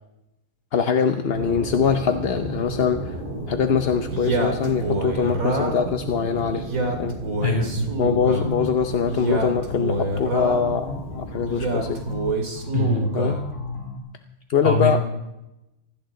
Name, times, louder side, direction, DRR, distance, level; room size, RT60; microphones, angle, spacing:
voice 1, 0.7-3.2 3.5-6.6 7.0-7.2 8.0-12.0 13.1-13.4 14.5-15.0, left 6 dB, 50° left, 6 dB, 0.9 m, -23 dB
sound 1, 1.3-12.2, right 1 dB, 35° right, 2.7 m, -35 dB
Male speech man speaking, 4.1-5.9 6.5-8.5 9.1-10.8 11.5-13.4, right 2 dB, 65° right, 2.8 m, -26 dB
voice 2, 7.4-7.7 12.7-13.1 14.6-15.0, left 2 dB, 35° left, 0 dB, 3.1 m, -22 dB
sound 2, 8.2-14.0, left 2 dB, 85° left, 2.9 m, -38 dB
25.5 x 13.5 x 3.8 m, 0.94 s
omnidirectional pair, 1.6 m